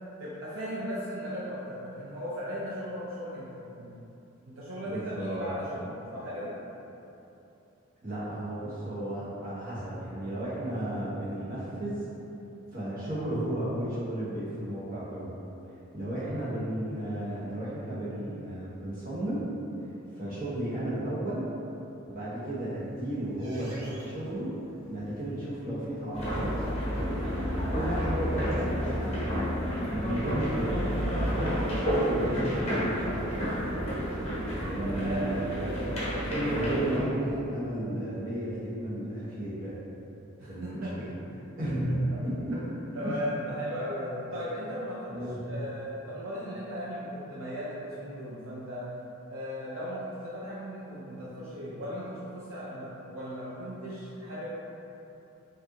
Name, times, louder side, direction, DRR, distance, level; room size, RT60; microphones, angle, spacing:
voice 1, 0.2-3.5 3.7-3.9 4.4-6.6 16.2-16.5 34.8-36.4 40.4-41.0 41.6-42.2 42.5-48.9 49.3-54.5, equal, 70° right, -8 dB, 0.6 m, -37 dB
voice 2, 4.8-5.4 8.0-11.9 12.7-15.4 15.9-19.4 20.1-21.5 22.1-24.5 24.9-26.5 27.7-29.3 29.9-33.5 34.6-35.5 36.3-39.7 40.4-41.1 41.6-42.5 43.0-43.1 45.1-45.4, right 1 dB, 40° right, -10 dB, 1.2 m, -33 dB
sound 1, 22.3-28.8, right 1 dB, 90° right, 1.4 m, -51 dB
sound 2, 26.1-37.0, equal, 30° left, 0.8 m, -30 dB
sound 3, 26.7-35.4, equal, 15° right, 0.8 m, -49 dB
4.9 x 2.6 x 2.8 m, 2.9 s
head